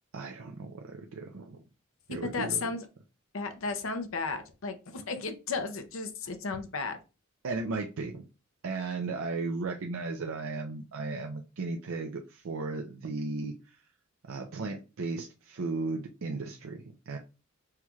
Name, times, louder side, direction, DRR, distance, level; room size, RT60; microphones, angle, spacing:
voice 1, 0.1-1.6 2.1-2.7 7.4-8.2 8.6-13.8 14.3-17.2, right 3 dB, 75° right, 2 dB, 0.5 m, -35 dB
voice 2, 2.1-2.9 3.3-7.0, left 4 dB, 75° left, 7 dB, 0.7 m, -34 dB
5.7 x 2.3 x 3.1 m, 0.31 s
head